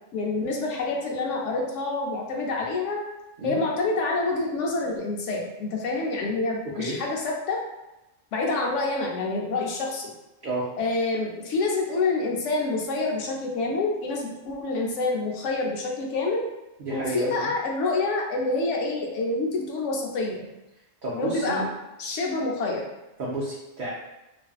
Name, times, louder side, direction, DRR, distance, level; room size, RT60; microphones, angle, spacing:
voice 1, 0.1-3.0 3.4-7.6 8.3-10.1 10.8-16.4 16.9-20.5 21.1-21.6 22.0-22.8, left 3 dB, 85° left, 0 dB, 0.9 m, -27 dB
voice 2, 6.6-7.0 10.4-10.7 16.8-17.5 21.0-21.7 23.2-23.9, right 2 dB, 55° right, -6 dB, 0.6 m, -31 dB
2.5 x 2.4 x 2.3 m, 0.96 s
omnidirectional pair, 1.2 m